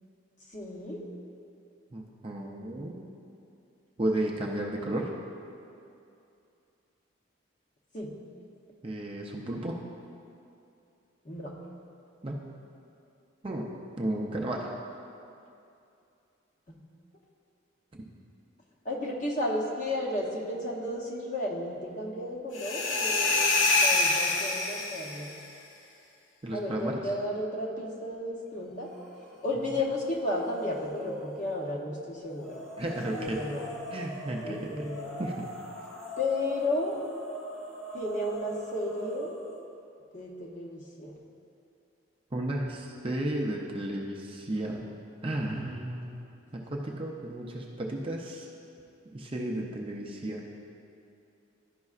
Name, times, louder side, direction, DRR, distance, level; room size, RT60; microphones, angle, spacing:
voice 1, 0.5-1.0 7.9-8.1 11.2-11.5 16.7-16.8 18.8-25.3 26.5-28.9 29.4-32.6 33.1-33.7 34.4-35.2 36.2-37.0 37.9-39.4 40.1-41.1 46.7-46.8, left 1 dB, 40° left, -2 dB, 0.8 m, -33 dB
voice 2, 1.9-3.0 4.0-5.1 8.8-9.8 12.2-12.5 13.4-13.7 14.0-14.7 17.9-18.0 26.4-27.1 32.8-33.4 33.9-34.9 35.2-35.5 42.3-44.8 45.2-46.2 46.5-48.5 49.1-50.4, right 1 dB, 25° right, -1 dB, 0.5 m, -33 dB
sound 1, 22.5-25.3, left 3 dB, 70° left, 0.7 m, -26 dB
sound 2, 28.8-29.4 29.8-31.6 32.4-39.5, equal, ahead, 0.8 m, -42 dB
11.5 x 5.3 x 2.4 m, 2.6 s
head